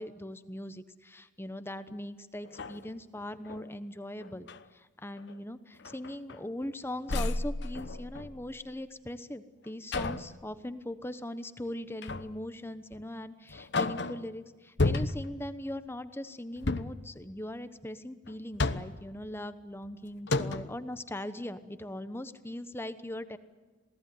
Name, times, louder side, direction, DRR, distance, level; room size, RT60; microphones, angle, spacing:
voice 1, 0.0-23.4, left 1 dB, 10° left, 11 dB, 1.0 m, -40 dB
sound 1, 1.9-2.0 2.4-3.7 4.2-4.6 5.2-5.4 5.8-6.7 7.1-8.6 9.9-10.4 12.0-12.4 12.9-13.0 13.5-14.3 14.8-15.4 16.6-17.1 18.2-19.1 19.8-19.9 20.3-20.8, left 2 dB, 60° left, 1.0 m, -33 dB
28.0 x 17.5 x 9.5 m, 1.3 s
head